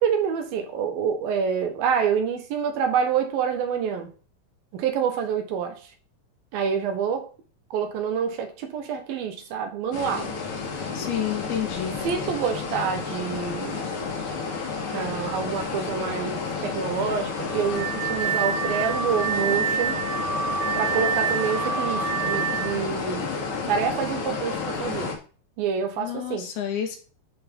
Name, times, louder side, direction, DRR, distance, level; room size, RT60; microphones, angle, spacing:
voice 1, 0.0-4.1 4.7-5.8 6.5-7.3 7.7-10.3 12.0-13.9 14.9-20.0 20.7-23.3 23.7-25.1 25.6-26.5, right 7 dB, 75° right, 3.0 m, -27 dB
sound 1, 9.9-25.2, left 4 dB, 50° left, 1.7 m, -31 dB
voice 2, 10.9-12.0 26.0-27.0, left 9 dB, 85° left, 3.5 m, -29 dB
Car / Alarm, 17.3-22.8, right 7 dB, 40° right, 1.7 m, -27 dB
11.0 x 4.2 x 3.7 m
omnidirectional pair, 4.3 m